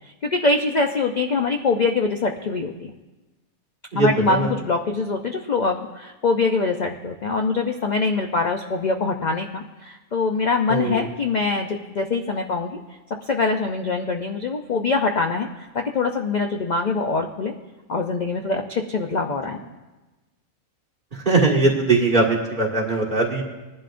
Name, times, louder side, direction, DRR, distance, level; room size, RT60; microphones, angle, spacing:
voice 1, 0.2-2.9 3.9-12.8 13.3-15.5 15.7-17.5 17.9-19.6, left 3 dB, 50° left, 4 dB, 0.5 m, -23 dB
voice 2, 3.9-4.5 10.7-11.0 21.3-23.4, right 3 dB, 35° right, -3 dB, 2.0 m, -20 dB
20.5 x 11.5 x 2.5 m, 1.1 s
omnidirectional pair, 1.5 m